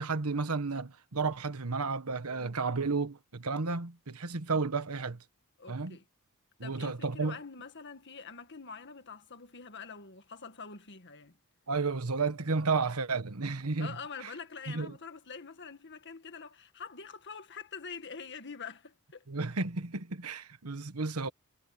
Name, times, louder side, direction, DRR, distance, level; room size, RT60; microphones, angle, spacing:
voice 1, 0.0-5.2 5.7-6.0 6.6-7.4 11.7-13.9 14.7-14.9 19.3-21.3, right 4 dB, 85° right, 1.4 m, -32 dB
voice 2, 5.6-6.0 6.6-11.4 13.8-19.3, left 5 dB, 55° left, 2.0 m, -45 dB
head